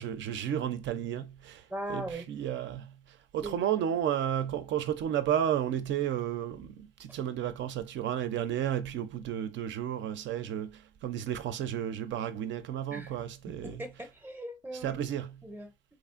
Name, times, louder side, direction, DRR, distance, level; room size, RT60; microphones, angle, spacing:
voice 1, 0.0-1.6 1.9-2.9 3.3-13.8 14.8-15.3, right 10 dB, 70° right, 0.4 m, -32 dB
voice 2, 1.7-2.3 3.4-3.5 12.9-13.2 13.5-15.0 15.4-15.7, right 1 dB, 10° right, 0.5 m, -39 dB
3.0 x 2.4 x 2.4 m
cardioid pair, 90°, 20 cm